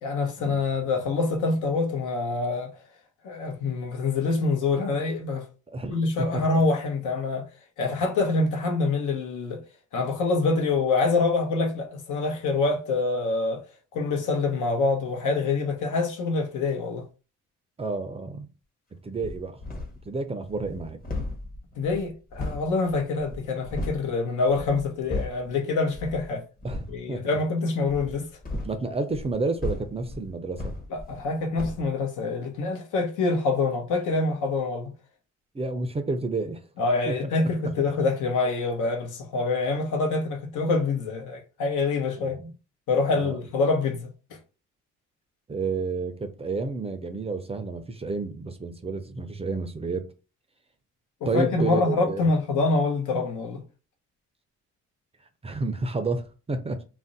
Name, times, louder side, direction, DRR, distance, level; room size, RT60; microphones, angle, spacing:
voice 1, 0.0-2.7 3.2-5.5 5.9-7.5 7.8-9.6 9.9-13.6 13.9-17.1 21.8-26.4 26.9-28.3 30.9-34.9 36.8-42.4 42.9-44.1 51.3-53.6, left 3 dB, 80° left, 0.8 m, -25 dB
voice 2, 5.7-6.4 17.8-18.5 19.0-19.6 20.1-21.0 26.6-27.2 28.6-30.8 35.5-36.6 37.1-37.3 42.2-42.5 43.1-43.4 45.5-50.1 51.3-52.2 55.4-56.8, right 3 dB, 20° right, 0.4 m, -30 dB
sound 1, 19.2-20.1 20.4-24.1 24.5-25.5 25.9-26.3 26.6-27.0 27.8-31.3 31.6-31.9, left 2 dB, 30° left, 0.9 m, -36 dB
2.5 x 2.0 x 3.8 m
cardioid pair, 90°, 30 cm